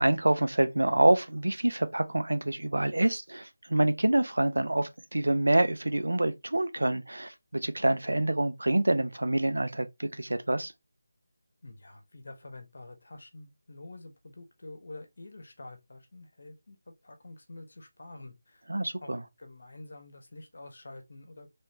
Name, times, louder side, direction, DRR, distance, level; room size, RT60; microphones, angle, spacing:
voice 1, 0.0-10.7 18.7-19.2, right 1 dB, 85° right, 0.6 m, -26 dB
voice 2, 11.6-18.6 19.0-21.5, left 2 dB, 60° left, 1.1 m, -47 dB
3.2 x 3.1 x 2.8 m
figure-of-eight pair, 165°, 0 cm